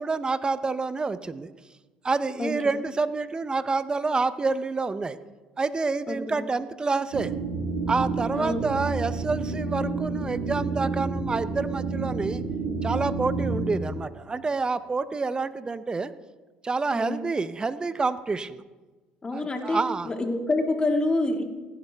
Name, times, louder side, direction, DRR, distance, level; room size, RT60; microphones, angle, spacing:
voice 1, 0.0-1.5 2.0-5.2 5.6-7.3 7.9-12.4 12.8-16.1 16.6-18.6 19.3-20.1, right 4 dB, 20° right, 14 dB, 0.6 m, -28 dB
voice 2, 6.1-6.4 8.4-8.6 16.9-17.3 19.2-21.4, left 2 dB, 25° left, 4 dB, 1.9 m, -27 dB
sound 1, 7.1-13.8, right 4 dB, 70° right, 1.6 m, -29 dB
16.5 x 9.9 x 3.4 m, 1.2 s
supercardioid pair, 80°, 4 cm